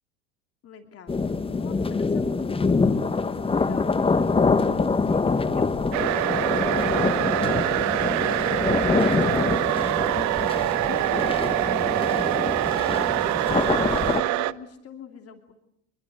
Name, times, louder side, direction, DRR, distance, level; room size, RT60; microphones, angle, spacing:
voice 1, 0.6-10.6 10.9-15.5, left 7 dB, 40° left, 6 dB, 2.9 m, -44 dB
sound 1, 1.1-14.2, left 4 dB, 15° left, 1.2 m, -25 dB
sound 2, 5.9-14.5, right 16 dB, 50° right, 1.0 m, -24 dB
25.5 x 22.5 x 8.1 m, 0.78 s
hypercardioid pair, 75°, 38 cm